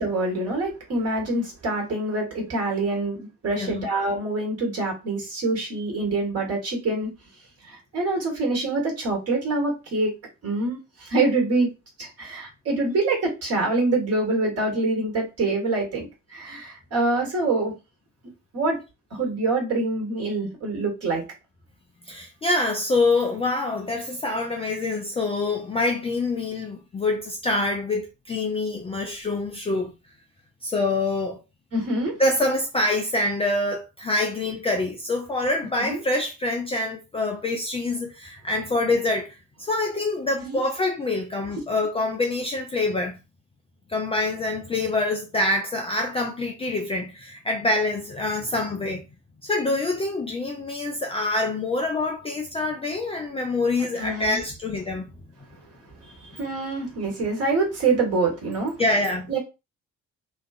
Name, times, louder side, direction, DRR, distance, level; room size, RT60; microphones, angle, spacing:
voice 1, 0.0-7.1 7.6-10.1 10.4-11.7 12.0-17.7 18.5-18.8 19.1-21.2 31.7-32.1 35.8-36.0 40.4-40.6 54.0-54.4 56.0-58.8 59.3-59.4, right 2 dB, 40° right, 1.4 m, -25 dB
voice 2, 3.5-3.9 22.1-29.9 30.6-31.4 32.2-43.2 43.9-49.1 49.4-55.1 58.8-59.3, left 2 dB, 15° left, 0.4 m, -26 dB
2.5 x 2.3 x 2.4 m
figure-of-eight pair, 45°, 38 cm